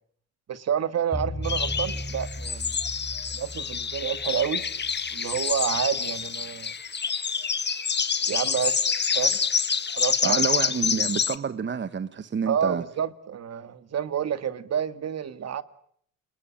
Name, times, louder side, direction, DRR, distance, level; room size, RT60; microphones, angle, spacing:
voice 1, 0.5-2.8 3.3-4.6 5.1-6.7 8.3-8.9 9.1-9.4 10.0-10.4 12.5-15.6, right 8 dB, 55° right, 2.2 m, -29 dB
sound 1, 1.1-5.6, equal, ahead, 7.5 m, -36 dB
sound 2, 1.4-11.3, left 6 dB, 35° left, 1.6 m, -27 dB
voice 2, 10.2-12.8, right 6 dB, 40° right, 1.4 m, -28 dB
30.0 x 21.0 x 8.9 m
cardioid pair, 90°, 30 cm